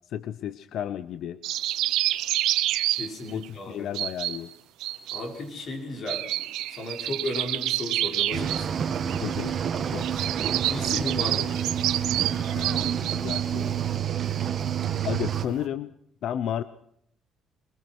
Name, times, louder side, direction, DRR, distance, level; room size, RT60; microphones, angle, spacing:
voice 1, 0.1-1.4 3.3-4.5 9.2-9.6 9.9-10.1 12.5-13.7 15.0-15.9 16.2-16.6, left 10 dB, 65° left, 14 dB, 0.9 m, -32 dB
sound 1, 1.4-3.5 3.9-4.5 4.8-5.3 6.1-8.6 8.9-9.4 10.0-13.6 14.2-14.3 14.6-15.6, right 14 dB, 85° right, 1.1 m, -28 dB
voice 2, 2.9-3.9 5.1-6.3 6.7-8.8 10.6-11.6, left 1 dB, 45° left, 3 dB, 5.7 m, -34 dB
Cricket / Waves surf, 8.3-15.4, right 8 dB, 40° right, 2.0 m, -28 dB
23.5 x 21.5 x 6.3 m, 0.69 s
cardioid pair, 140°, 0 cm